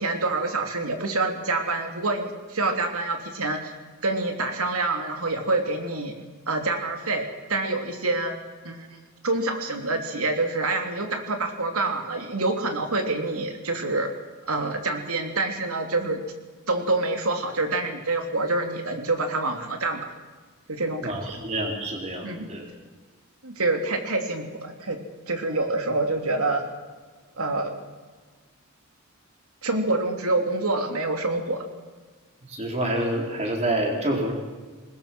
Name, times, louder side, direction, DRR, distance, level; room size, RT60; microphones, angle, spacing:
voice 1, 0.0-3.7 4.0-6.1 6.5-8.4 8.6-8.9 9.2-14.1 14.5-16.2 16.7-20.0 20.7-21.3 22.2-22.5 23.4-25.0 25.3-26.7 27.4-27.8 29.6-31.6, right 2 dB, 85° right, 5 dB, 2.8 m, -26 dB
voice 2, 21.0-22.6 32.5-34.3, right 1 dB, 30° right, 1 dB, 4.1 m, -27 dB
20.5 x 20.5 x 6.1 m, 1.4 s
head